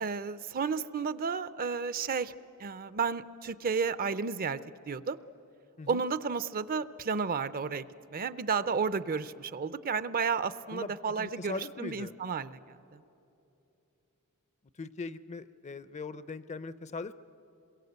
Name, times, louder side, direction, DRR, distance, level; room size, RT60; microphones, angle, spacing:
voice 1, 0.0-2.3 2.6-4.6 4.9-5.2 5.9-13.0, right 5 dB, 40° right, 16 dB, 0.5 m, -32 dB
voice 2, 10.7-12.1 14.8-17.1, left 3 dB, 30° left, 15 dB, 0.5 m, -40 dB
27.0 x 22.5 x 8.0 m, 3.0 s
head